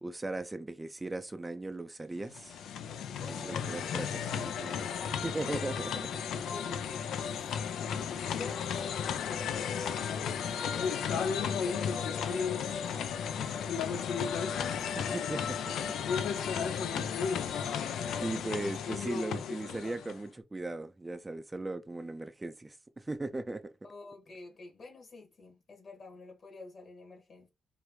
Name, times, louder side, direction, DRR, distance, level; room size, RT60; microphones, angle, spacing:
voice 1, 0.0-2.6 3.2-4.8 5.2-6.1 15.0-15.9 16.9-17.2 18.2-23.7, right 2 dB, 20° right, 0.4 m, -38 dB
sound 1, 2.2-20.3, left 7 dB, 90° left, 0.4 m, -34 dB
voice 2, 3.2-4.2 6.3-7.5 8.3-9.4 10.0-15.2 16.7-17.2 23.8-27.5, left 3 dB, 50° left, 1.7 m, -49 dB
4.7 x 2.5 x 3.1 m
cardioid pair, 90°, 0 cm